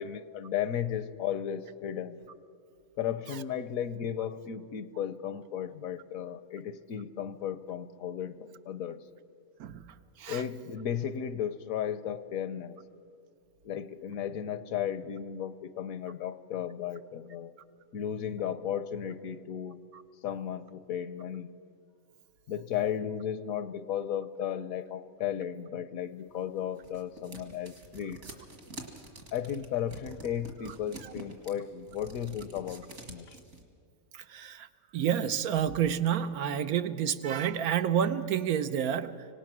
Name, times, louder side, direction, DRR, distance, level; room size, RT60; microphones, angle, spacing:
voice 1, 0.0-2.2 3.0-9.0 10.3-12.8 13.6-17.5 17.9-19.8 20.2-21.5 22.5-28.2 29.3-33.4, left 9 dB, 75° left, 14 dB, 1.2 m, -35 dB
voice 2, 9.6-10.4 34.1-34.7 34.9-39.3, right 9 dB, 80° right, 11 dB, 1.2 m, -29 dB
sound 1, 26.4-33.6, right 2 dB, 65° right, 2.5 m, -47 dB
25.5 x 18.0 x 6.1 m, 2.3 s
omnidirectional pair, 1.5 m